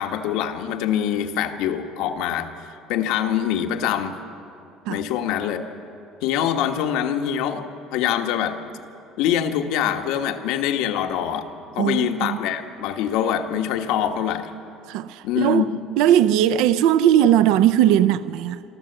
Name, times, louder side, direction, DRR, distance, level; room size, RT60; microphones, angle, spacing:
voice 1, 0.0-2.5 2.9-4.1 4.9-5.6 6.2-7.6 7.9-8.6 9.2-11.5 11.7-14.5 15.2-15.7, left 9 dB, 75° left, 1.2 m, -24 dB
voice 2, 11.8-12.4 14.9-15.7 16.0-18.6, right 11 dB, 75° right, 0.4 m, -18 dB
26.5 x 12.5 x 7.9 m
cardioid pair, 165°, 0 cm